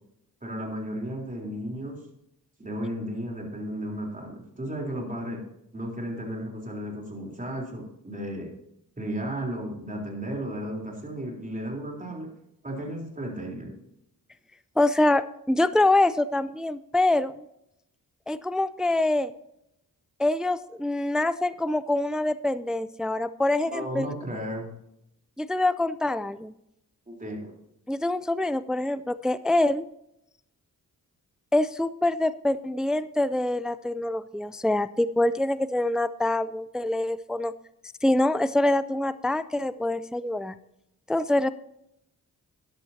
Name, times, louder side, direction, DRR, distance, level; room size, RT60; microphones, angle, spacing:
voice 1, 0.4-2.0 2.6-5.4 5.7-8.5 9.0-12.3 12.6-13.7 23.7-24.7 27.1-27.5, right 1 dB, 20° right, -1 dB, 3.8 m, -34 dB
voice 2, 14.8-17.5 18.3-19.3 20.2-24.1 25.4-26.5 27.9-29.8 31.5-37.5 38.0-40.6 41.1-41.5, left 2 dB, ahead, 14 dB, 0.4 m, -25 dB
13.5 x 10.5 x 2.8 m, 0.79 s
cardioid pair, 70°, 36 cm